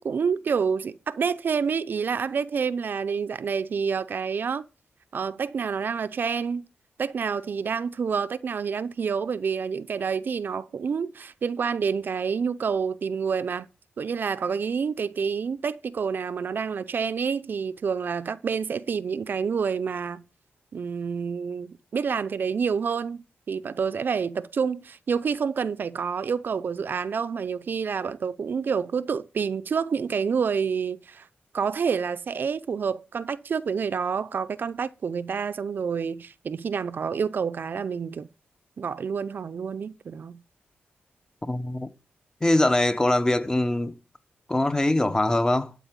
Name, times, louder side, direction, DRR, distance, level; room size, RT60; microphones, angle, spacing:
voice 1, 0.0-4.6 5.1-6.7 7.0-13.7 14.0-20.2 20.7-31.3 31.5-38.3 38.8-40.4, right 6 dB, 55° right, 0.6 m, -28 dB
voice 2, 41.5-41.9 42.4-43.9 44.5-45.7, left 1 dB, 15° left, 1.0 m, -23 dB
12.0 x 4.6 x 7.6 m
cardioid pair, 95°, 4 cm